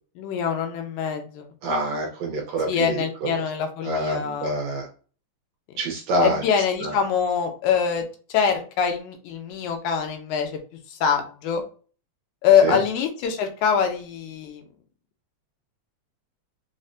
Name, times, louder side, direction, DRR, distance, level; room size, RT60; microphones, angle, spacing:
voice 1, 0.2-1.5 2.7-4.6 6.2-8.0 8.3-10.6 10.9-11.6 12.4-14.6, left 7 dB, 90° left, 5 dB, 2.1 m, -24 dB
voice 2, 1.6-3.4 3.8-4.9 5.8-6.4 6.8-6.9 12.6-12.8, right 1 dB, 75° right, 0 dB, 1.6 m, -26 dB
5.2 x 2.1 x 2.5 m, 0.39 s
omnidirectional pair, 3.5 m